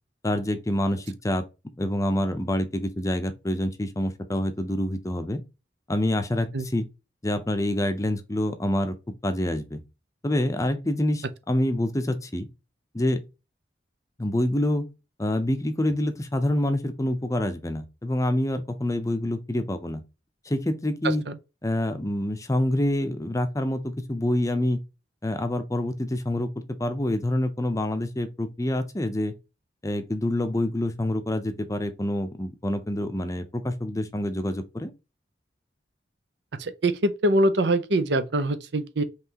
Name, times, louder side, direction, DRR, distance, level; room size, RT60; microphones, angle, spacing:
voice 1, 0.2-1.4 1.8-5.4 5.9-6.9 7.2-9.0 9.2-9.8 10.2-12.5 12.9-13.2 14.2-14.9 15.2-20.0 20.5-21.2 21.6-24.8 25.2-26.5 26.8-29.3 29.8-34.9, left 1 dB, 20° left, 0.6 m, -26 dB
voice 2, 36.6-39.0, right 1 dB, 70° right, 0.6 m, -23 dB
5.6 x 3.2 x 2.9 m
head